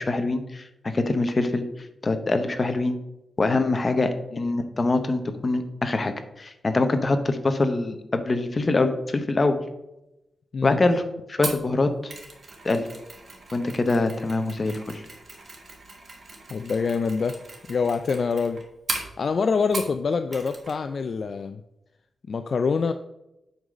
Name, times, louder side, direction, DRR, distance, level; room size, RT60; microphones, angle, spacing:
voice 1, 0.0-1.6 2.0-2.9 3.4-4.1 4.4-9.6 10.6-11.0 11.3-12.1 12.6-12.9 13.5-15.0, left 2 dB, 25° left, 7 dB, 0.8 m, -24 dB
Mechanisms, 11.4-20.0 20.3-20.8 21.0-21.2, right 3 dB, 40° right, 1.6 m, -38 dB
voice 2, 16.5-17.4 17.7-18.6 19.2-21.6 22.3-22.9, left 5 dB, 50° left, 8 dB, 0.3 m, -25 dB
7.8 x 3.9 x 6.3 m, 0.90 s
wide cardioid pair, 160°, 0 cm